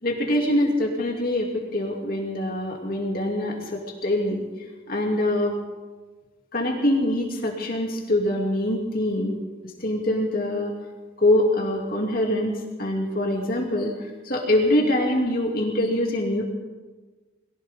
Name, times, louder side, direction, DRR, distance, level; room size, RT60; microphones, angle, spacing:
voice 1, 0.0-4.5 4.9-5.6 6.5-9.4 9.8-10.7 11.2-16.4, left 1 dB, 45° left, -1 dB, 2.9 m, -24 dB
23.0 x 16.0 x 3.8 m, 1.3 s
head